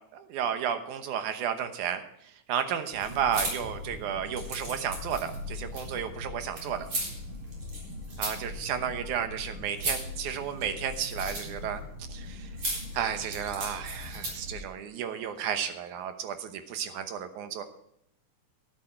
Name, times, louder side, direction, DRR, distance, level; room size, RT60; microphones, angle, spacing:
voice 1, 0.1-2.0 2.5-6.9 8.2-11.8 12.1-12.5 12.9-17.6, right 8 dB, 75° right, 8 dB, 2.4 m, -32 dB
sound 1, 2.9-14.6, equal, 50° right, 4.8 m, -37 dB
12.5 x 10.5 x 4.5 m, 0.76 s
omnidirectional pair, 3.7 m